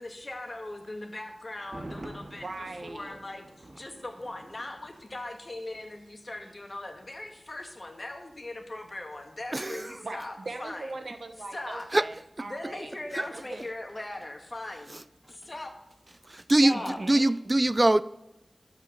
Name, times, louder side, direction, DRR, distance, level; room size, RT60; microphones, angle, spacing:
voice 1, 0.0-2.5 2.8-10.9 11.5-11.9 12.4-15.0 15.3-15.7 16.6-17.0, left 2 dB, 50° left, 1.9 m, -39 dB
Thunder, 1.5-5.5 5.7-5.8, right 1 dB, 60° right, 1.8 m, -46 dB
voice 2, 2.3-3.1 10.0-13.7 16.7-17.3, right 2 dB, 85° right, 1.2 m, -41 dB
voice 3, 9.5-10.0 11.9-12.0 13.2-13.3 16.3-18.0, right 1 dB, 35° right, 0.4 m, -23 dB
12.5 x 4.9 x 7.1 m
wide cardioid pair, 45°, 0 cm